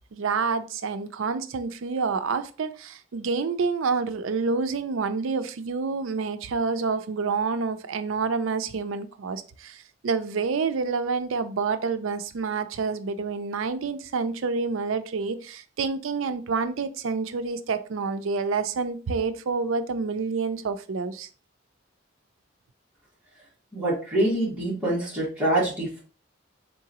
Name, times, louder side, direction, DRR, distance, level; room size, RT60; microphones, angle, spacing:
voice 1, 0.1-21.3, right 4 dB, 75° right, 0.4 m, -28 dB
voice 2, 23.7-26.0, right 1 dB, 5° right, 2.1 m, -25 dB
3.8 x 3.7 x 2.9 m
head